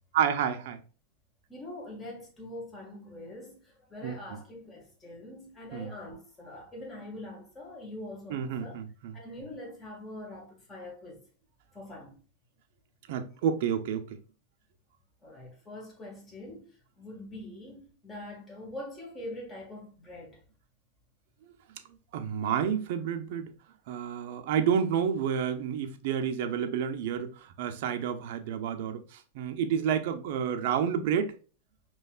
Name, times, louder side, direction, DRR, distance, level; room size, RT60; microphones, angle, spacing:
voice 1, 0.1-0.8 4.0-4.4 5.7-5.9 8.3-9.2 13.1-14.1 22.1-23.5 23.9-31.3, right 8 dB, 60° right, 0.7 m, -30 dB
voice 2, 1.5-8.8 9.1-11.2 11.7-12.2 15.2-16.7 17.0-20.4, left 1 dB, 15° left, 1.8 m, -43 dB
5.4 x 3.1 x 2.4 m
hypercardioid pair, 130°, 0 cm